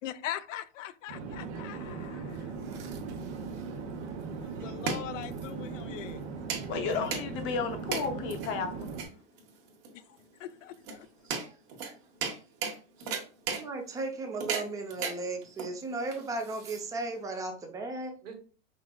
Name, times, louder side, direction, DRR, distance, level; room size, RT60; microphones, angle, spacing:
voice 1, 0.0-2.6 4.4-6.2 9.9-11.1, left 12 dB, 80° left, 14 dB, 0.5 m, -41 dB
Conversation / Chatter / Fixed-wing aircraft airplane, 1.1-9.0, right 5 dB, 60° right, 1.0 m, -39 dB
sound 1, 2.3-17.2, right 5 dB, 45° right, 1.2 m, -39 dB
voice 2, 6.7-8.9, left 5 dB, 30° left, 7 dB, 0.7 m, -33 dB
voice 3, 11.0-12.0 12.3-12.5 13.0-13.2 18.2-18.3, right 6 dB, 90° right, 4 dB, 1.5 m, -54 dB
voice 4, 13.5-18.1, right 2 dB, 10° right, 4 dB, 0.5 m, -35 dB
5.1 x 3.7 x 2.3 m, 0.38 s
hypercardioid pair, 135°, 37 cm